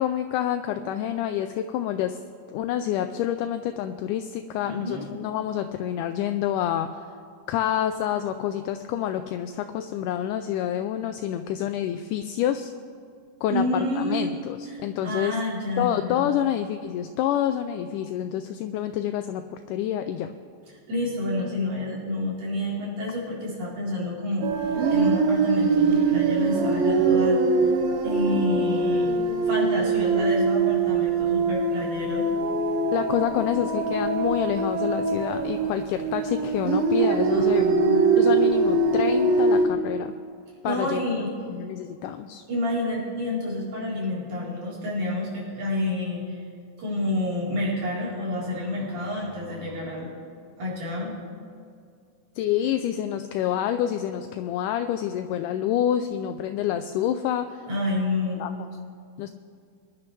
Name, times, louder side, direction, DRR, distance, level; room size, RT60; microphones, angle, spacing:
voice 1, 0.0-2.2 2.5-7.0 7.5-12.7 13.4-15.4 15.8-20.3 32.9-37.7 38.2-40.1 40.6-41.0 41.5-42.4 52.4-57.7 58.4-58.5 59.2-59.3, left 10 dB, 80° left, 8 dB, 1.9 m, -27 dB
voice 2, 4.6-5.0 13.5-14.3 14.7-16.3 20.9-27.7 28.0-29.1 29.4-32.3 37.3-38.0 40.7-41.3 42.5-46.4 46.8-50.2 50.6-51.1 57.7-58.5, left 1 dB, 60° right, -6 dB, 5.4 m, -29 dB
sound 1, 24.4-39.7, right 4 dB, 85° right, 2.7 m, -23 dB
23.0 x 11.0 x 3.3 m, 2.2 s
omnidirectional pair, 4.1 m